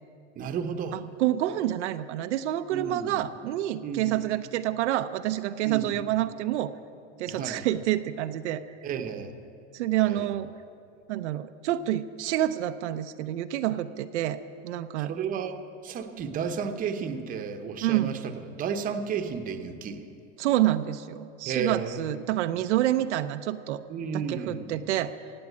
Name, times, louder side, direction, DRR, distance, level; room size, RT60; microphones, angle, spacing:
voice 1, 0.4-1.0 2.7-3.2 3.8-4.2 5.6-6.0 7.3-7.7 8.8-9.3 10.0-10.3 15.0-15.6 15.8-20.0 21.4-22.0 23.9-24.8, right 6 dB, 25° right, 7 dB, 0.9 m, -33 dB
voice 2, 0.9-6.7 7.2-8.6 9.7-10.5 11.1-15.1 17.8-18.2 20.4-23.8 24.1-25.2, right 13 dB, 75° right, 9 dB, 0.7 m, -28 dB
16.5 x 8.6 x 8.3 m, 2.6 s
supercardioid pair, 140°, 35 cm